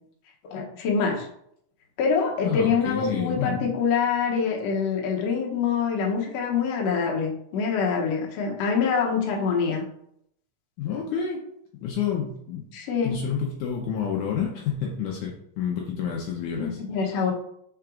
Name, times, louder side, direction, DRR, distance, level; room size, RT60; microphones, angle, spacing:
voice 1, 0.5-1.3 2.0-9.8 12.7-13.2 16.6-17.3, left 5 dB, 75° left, -1 dB, 1.4 m, -25 dB
voice 2, 2.4-3.7 10.8-11.4 11.8-12.6 13.0-16.8, left 7 dB, 90° left, -1 dB, 1.7 m, -29 dB
5.8 x 4.5 x 3.7 m, 0.72 s
omnidirectional pair, 4.5 m